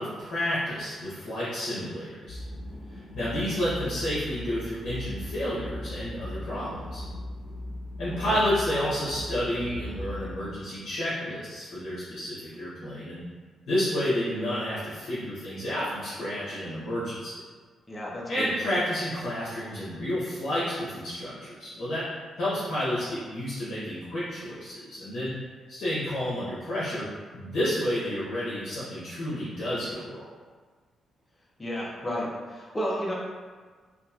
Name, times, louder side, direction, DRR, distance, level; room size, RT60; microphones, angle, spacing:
voice 1, 0.0-2.4 2.9-7.0 8.0-13.2 13.7-17.3 18.3-22.0 22.4-25.3 25.7-27.1 27.3-30.3, equal, 65° left, -10 dB, 0.8 m, -30 dB
sound 1, 2.3-10.4, left 1 dB, 40° right, 1.1 m, -38 dB
voice 2, 17.9-18.5 31.6-33.1, equal, 20° left, -4 dB, 0.6 m, -32 dB
2.8 x 2.4 x 2.4 m, 1.5 s
cardioid pair, 105°, 0 cm